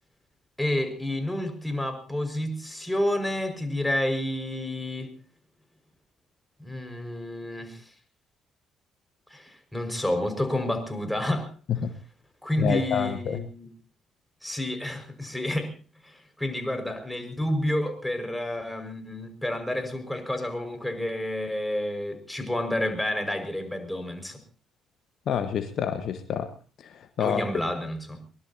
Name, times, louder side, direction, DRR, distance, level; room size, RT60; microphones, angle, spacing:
voice 1, 0.6-5.1 6.6-7.9 9.3-11.5 12.4-13.7 14.4-15.7 16.0-24.4 27.2-28.2, left 1 dB, 5° left, 6 dB, 5.4 m, -29 dB
voice 2, 12.6-13.4 25.3-26.5 26.8-27.4, left 8 dB, 55° left, 10 dB, 1.3 m, -28 dB
23.0 x 20.0 x 2.8 m, 0.36 s
figure-of-eight pair, 45°, 0 cm